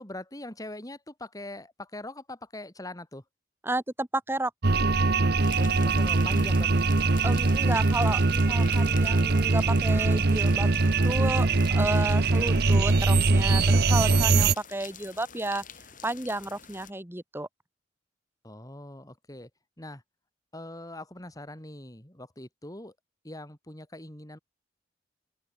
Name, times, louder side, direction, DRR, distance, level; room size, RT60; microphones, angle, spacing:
voice 1, 0.0-3.2 5.6-6.9 18.4-19.5 19.8-20.0 20.5-22.9 23.2-24.4, left 1 dB, 20° left, 3.8 m, -42 dB
voice 2, 3.6-4.5 7.2-15.6 16.0-17.5, right 2 dB, 15° right, 1.7 m, -32 dB
sound 1, 4.6-14.5, right 3 dB, 60° right, 1.0 m, -22 dB
sound 2, 5.4-16.9, left 7 dB, 50° left, 6.5 m, -48 dB
open air
head